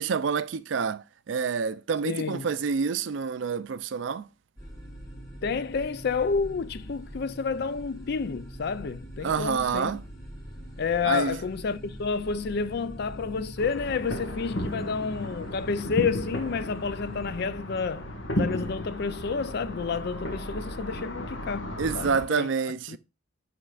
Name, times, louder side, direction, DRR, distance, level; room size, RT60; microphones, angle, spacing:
voice 1, 0.0-4.3 9.2-10.0 11.0-11.4 21.8-23.0, right 5 dB, 70° right, 0.4 m, -28 dB
voice 2, 2.0-2.5 5.4-9.9 10.8-22.5 22.9-23.0, left 5 dB, 55° left, 0.4 m, -30 dB
sound 1, 4.6-17.5, right 1 dB, 20° left, 1.9 m, -44 dB
sound 2, 13.6-22.3, equal, 90° left, 1.7 m, -34 dB
10.0 x 4.2 x 2.4 m
head